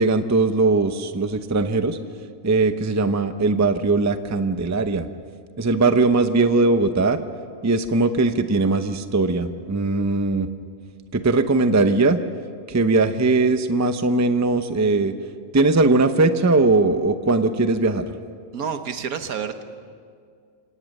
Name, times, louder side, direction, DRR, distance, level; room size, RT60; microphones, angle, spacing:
voice 1, 0.0-2.0 2.4-5.1 5.6-7.2 7.6-10.5 11.1-12.2 12.7-15.1 15.5-18.1, right 3 dB, 20° right, 9 dB, 0.5 m, -20 dB
voice 2, 18.5-19.6, right 7 dB, 80° right, 9 dB, 1.6 m, -29 dB
26.0 x 18.0 x 6.6 m, 2.1 s
omnidirectional pair, 1.5 m